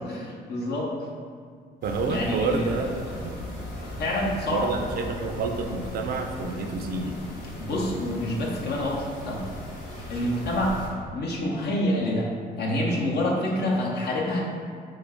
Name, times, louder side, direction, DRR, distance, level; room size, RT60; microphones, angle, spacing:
voice 1, 0.1-0.9 2.0-2.7 3.2-3.4 4.0-4.7 7.6-9.4 10.1-10.8 11.1-12.3 12.6-14.4, left 1 dB, 60° left, -3 dB, 0.7 m, -27 dB
sound 1, 1.8-10.9, left 1 dB, 90° left, 1.0 m, -38 dB
voice 2, 1.8-3.5 4.5-7.2, right 4 dB, 55° right, 4 dB, 0.4 m, -29 dB
3.1 x 2.5 x 3.5 m, 2.1 s
cardioid pair, 80°, 19 cm